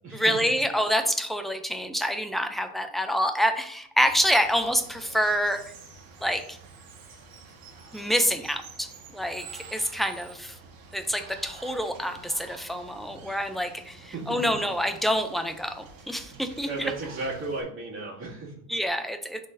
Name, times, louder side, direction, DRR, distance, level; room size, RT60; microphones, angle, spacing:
voice 1, 0.1-5.6 6.2-6.6 7.9-10.6 10.9-16.9 18.7-19.5, equal, ahead, 6 dB, 0.3 m, -27 dB
Water, 4.1-17.6, right 4 dB, 55° right, 1.4 m, -48 dB
voice 2, 16.6-18.5, right 3 dB, 30° right, -4 dB, 2.2 m, -34 dB
10.0 x 4.0 x 2.6 m, 0.67 s
cardioid pair, 135°, 41 cm